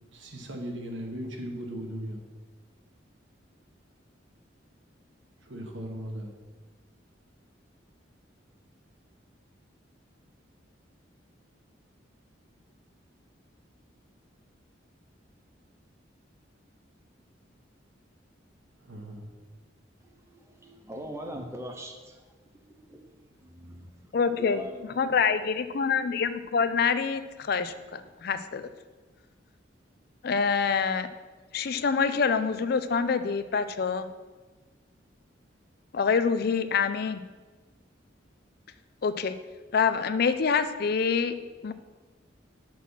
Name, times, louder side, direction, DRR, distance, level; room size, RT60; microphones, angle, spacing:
voice 1, 0.1-2.2 5.4-6.3 18.8-19.3, equal, 80° right, 2 dB, 1.3 m, -37 dB
voice 2, 20.0-24.9, right 1 dB, 15° right, 2 dB, 0.9 m, -42 dB
voice 3, 24.1-24.6 25.0-28.7 30.2-31.1 31.5-34.1 35.9-37.2 39.0-39.3 39.7-41.4 41.6-41.7, left 5 dB, 55° left, 12 dB, 0.4 m, -26 dB
6.1 x 5.9 x 5.7 m, 1.3 s
head